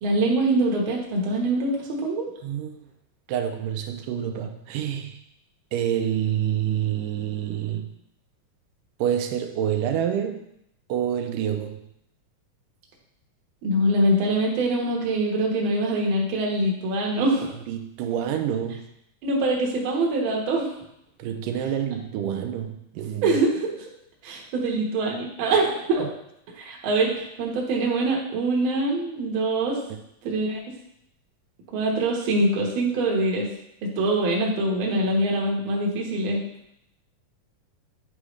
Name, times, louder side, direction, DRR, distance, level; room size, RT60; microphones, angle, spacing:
voice 1, 0.0-2.3 13.6-17.5 19.2-20.7 23.2-23.8 24.2-26.1 26.6-29.8 30.2-30.6 31.7-33.5 33.8-36.5, right 2 dB, 55° right, -2 dB, 1.6 m, -24 dB
voice 2, 2.4-2.9 3.3-5.2 5.7-7.9 9.0-10.4 10.9-11.8 17.7-18.8 21.2-23.4 26.0-26.1, right 9 dB, 90° right, 6 dB, 2.2 m, -27 dB
9.5 x 4.9 x 3.2 m, 0.77 s
omnidirectional pair, 3.7 m